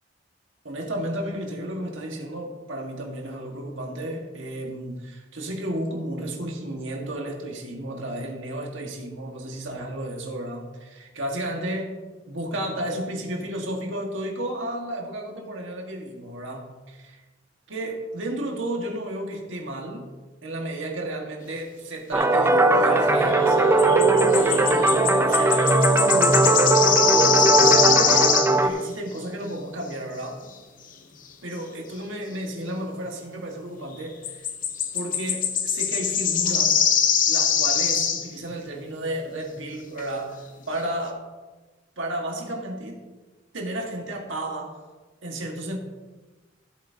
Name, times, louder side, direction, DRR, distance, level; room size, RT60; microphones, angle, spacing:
voice 1, 0.6-12.0 12.2-17.2 17.7-20.1 20.4-24.0 24.3-28.3 28.6-30.4 31.4-34.4 34.9-36.8 37.3-41.3 42.0-43.1 43.5-44.8 45.2-45.8, right 1 dB, 75° right, 1 dB, 1.7 m, -32 dB
sound 1, 22.1-28.7, right 2 dB, 15° right, 0.6 m, -19 dB
sound 2, 23.3-23.5 23.8-28.6 34.2-38.3 39.6-39.7 40.0-40.1, left 7 dB, 45° left, 0.9 m, -22 dB
14.5 x 7.9 x 2.8 m, 1.3 s
head